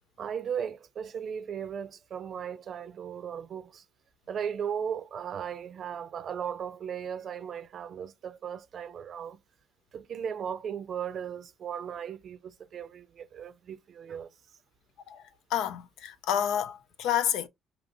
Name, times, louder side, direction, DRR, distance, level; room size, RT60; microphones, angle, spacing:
voice 1, 0.2-3.8 4.3-9.4 9.9-14.3, right 8 dB, 50° right, 0.5 m, -37 dB
voice 2, 15.1-17.5, left 10 dB, 75° left, 0.5 m, -30 dB
5.1 x 2.9 x 2.5 m
supercardioid pair, 75°, 0 cm